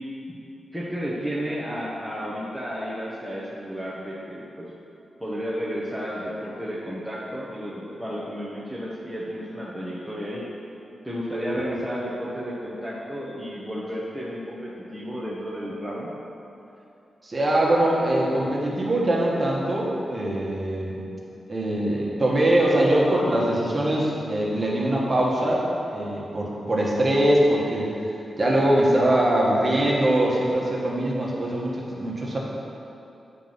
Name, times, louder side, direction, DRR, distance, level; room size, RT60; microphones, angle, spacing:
voice 1, 0.7-4.7 5.2-10.5 11.0-16.1, equal, ahead, -6 dB, 0.9 m, -32 dB
voice 2, 17.2-21.0 21.5-25.6 25.9-27.9 28.4-32.4, right 1 dB, 25° right, -4 dB, 1.4 m, -22 dB
9.1 x 4.6 x 5.6 m, 2.7 s
wide cardioid pair, 155°, 0 cm